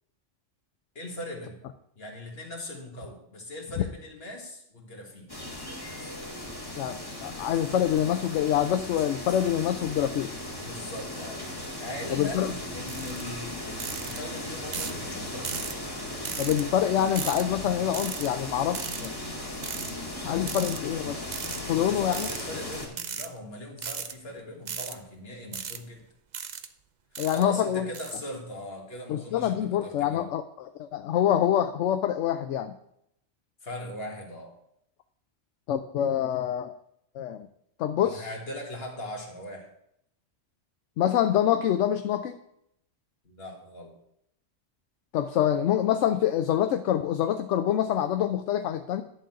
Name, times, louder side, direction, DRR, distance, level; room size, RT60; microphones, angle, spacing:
voice 1, 1.0-1.6 2.0-5.3 10.6-11.4 11.8-15.6 21.8-26.0 27.3-30.3 33.6-34.6 38.0-39.7 43.2-43.9, left 1 dB, 55° left, 0 dB, 2.0 m, -40 dB
sound 1, 5.3-22.9, left 1 dB, 20° left, 1.9 m, -37 dB
voice 2, 6.8-10.3 12.1-12.5 16.4-19.1 20.2-21.3 21.7-22.3 27.2-27.9 29.1-32.8 35.7-36.7 37.1-37.5 37.8-38.3 41.0-42.3 45.1-49.0, left 10 dB, 80° left, 9 dB, 0.9 m, -26 dB
sound 2, 12.9-13.2 13.8-14.2 14.7-15.0 15.4-15.7 16.2-16.6 17.2-17.4 17.9-18.3 18.7-19.1 19.6-19.9 20.5-20.8 21.3-21.6 22.1-22.4 22.9-23.3 23.8-24.1 24.7-25.0 25.5-25.8 26.3-26.7 27.2-27.4 27.9-28.2, right 7 dB, 50° right, 0.6 m, -36 dB
11.0 x 3.9 x 7.5 m, 0.76 s
omnidirectional pair, 1.2 m